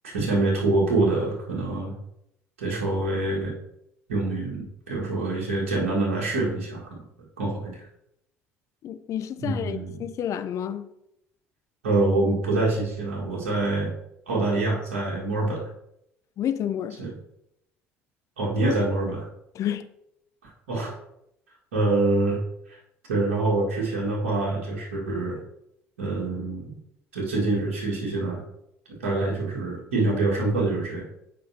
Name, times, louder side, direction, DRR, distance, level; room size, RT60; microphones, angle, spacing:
voice 1, 0.0-2.0 2.6-3.5 4.1-7.0 7.4-7.9 9.4-10.0 11.8-13.9 14.3-15.7 17.0-17.1 18.4-19.3 20.4-20.9 21.7-22.4 22.7-22.8 23.1-25.4 26.0-26.8 27.1-28.4 29.0-31.0, right 2 dB, 75° right, 1.8 m, -25 dB
voice 2, 8.8-10.9 16.4-17.0 19.5-19.9, left 10 dB, 45° left, 0.6 m, -30 dB
8.5 x 5.3 x 2.8 m
figure-of-eight pair, 60°, 7 cm